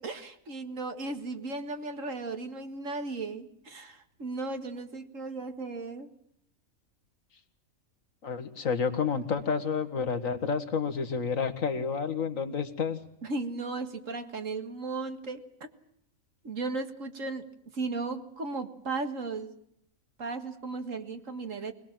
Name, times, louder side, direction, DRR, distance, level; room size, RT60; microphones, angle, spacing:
voice 1, 0.0-6.1 9.2-9.3 13.2-15.5 16.4-19.6 20.2-21.7, right 3 dB, 65° right, 7 dB, 2.2 m, -36 dB
voice 2, 8.2-13.0, left 5 dB, 70° left, 8 dB, 2.0 m, -30 dB
25.0 x 20.0 x 7.5 m, 0.72 s
omnidirectional pair, 1.5 m